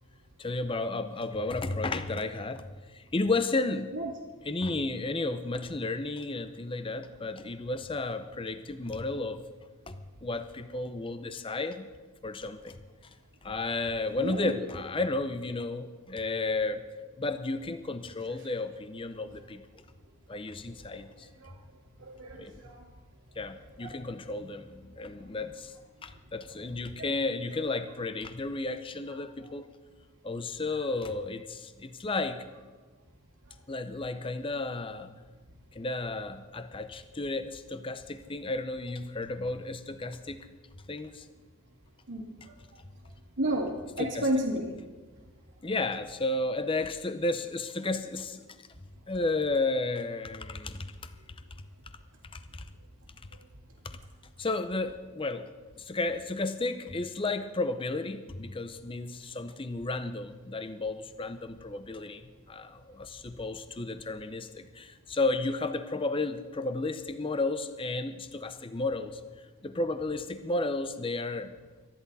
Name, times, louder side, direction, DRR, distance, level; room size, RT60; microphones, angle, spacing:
voice 1, 0.4-2.6 2.9-3.9 4.4-9.4 9.9-11.9 12.2-12.8 13.4-16.9 17.2-19.6 20.3-21.3 22.3-22.5 23.4-25.7 26.0-29.7 30.2-32.5 33.7-35.1 35.7-40.4 40.9-41.2 44.0-44.3 45.6-48.4 49.1-50.9 52.3-52.6 54.4-55.5 55.8-62.2 62.5-69.2 69.6-71.5, left 2 dB, 25° left, 10 dB, 0.6 m, -33 dB
voice 2, 14.2-14.6 21.4-21.5 22.0-22.9 23.8-23.9 27.0-27.1 42.1-42.5 43.4-44.7, right 1 dB, 65° right, -6 dB, 2.2 m, -32 dB
25.0 x 10.5 x 4.1 m, 1.4 s
head